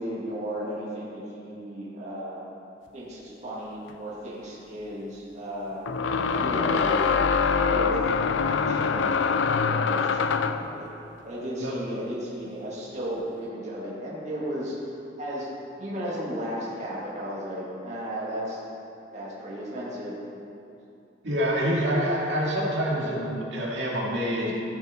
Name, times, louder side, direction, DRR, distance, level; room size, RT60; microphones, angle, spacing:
voice 1, 0.0-2.4 2.9-5.8 6.4-7.9 8.3-10.9 11.2-14.8 15.2-15.5 15.8-18.6 19.1-20.2, equal, 40° right, -6 dB, 2.1 m, -35 dB
sound 1, 3.9-4.0 5.9-10.7, left 5 dB, 90° left, 0.5 m, -24 dB
voice 2, 21.2-24.5, equal, 70° right, -4 dB, 2.3 m, -26 dB
14.5 x 7.0 x 4.4 m, 2.7 s
head